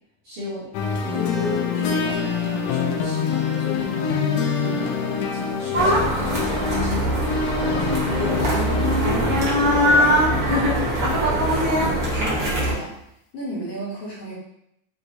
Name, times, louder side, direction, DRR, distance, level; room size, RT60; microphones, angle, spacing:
voice 1, 0.2-0.7 1.0-4.3 4.6-7.2 7.6-10.9, left 1 dB, 60° right, -9 dB, 1.6 m, -34 dB
sound 1, 0.7-12.2, left 6 dB, 85° left, 1.5 m, -27 dB
sound 2, 5.7-12.7, equal, 85° right, 0.8 m, -21 dB
voice 2, 11.7-13.0 13.3-14.3, right 1 dB, 65° left, -6 dB, 1.9 m, -33 dB
6.0 x 2.8 x 2.6 m, 0.76 s
omnidirectional pair, 3.6 m